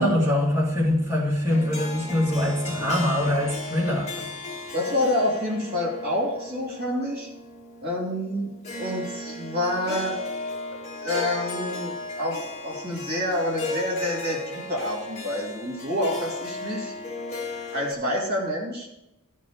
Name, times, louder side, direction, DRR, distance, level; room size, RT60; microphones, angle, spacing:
voice 1, 0.0-4.3, left 1 dB, 10° right, -6 dB, 2.5 m, -23 dB
Harp, 1.5-17.9, left 2 dB, 30° left, 1.8 m, -36 dB
voice 2, 4.7-7.3 7.8-8.5 8.8-10.2 11.0-16.9 17.7-18.9, left 1 dB, 45° right, -3 dB, 3.0 m, -28 dB
13.5 x 5.4 x 5.0 m, 0.90 s
head